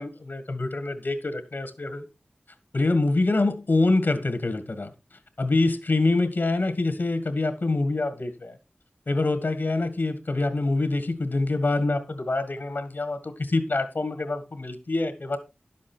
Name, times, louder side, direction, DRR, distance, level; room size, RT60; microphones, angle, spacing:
voice 1, 0.0-2.0 2.7-4.9 5.4-8.6 9.1-15.4, left 2 dB, 80° left, 1.7 m, -25 dB
11.0 x 7.5 x 4.4 m
wide cardioid pair, 55°, 3 cm